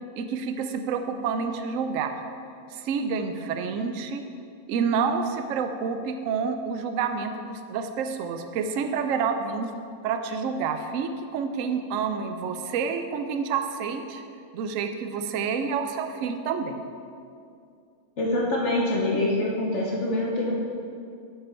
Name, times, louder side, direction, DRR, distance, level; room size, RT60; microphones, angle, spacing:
voice 1, 0.2-2.2 2.7-4.2 4.7-9.7 10.0-14.2 14.5-16.8, right 6 dB, 75° right, 7 dB, 0.9 m, -28 dB
voice 2, 18.2-20.5, left 1 dB, 60° left, -3 dB, 1.2 m, -25 dB
8.8 x 5.7 x 4.3 m, 2.4 s
omnidirectional pair, 1.4 m